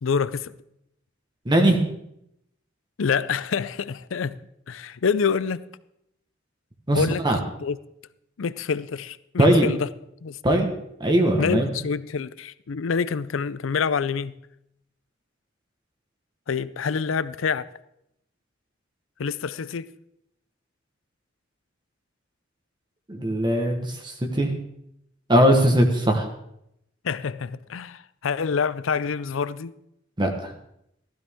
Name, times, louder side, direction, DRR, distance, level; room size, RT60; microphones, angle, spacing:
voice 1, 0.0-0.5 3.0-4.4 4.7-5.6 6.9-7.8 8.4-9.9 10.2-10.4 11.4-14.3 16.5-17.6 19.2-19.9 27.0-29.7, left 6 dB, 80° left, 0.5 m, -27 dB
voice 2, 1.5-1.8 6.9-7.4 9.4-9.7 10.4-10.7 11.0-11.7 23.1-24.5 25.3-26.3 30.2-30.3, right 1 dB, 25° right, 1.2 m, -20 dB
15.0 x 12.5 x 3.6 m
head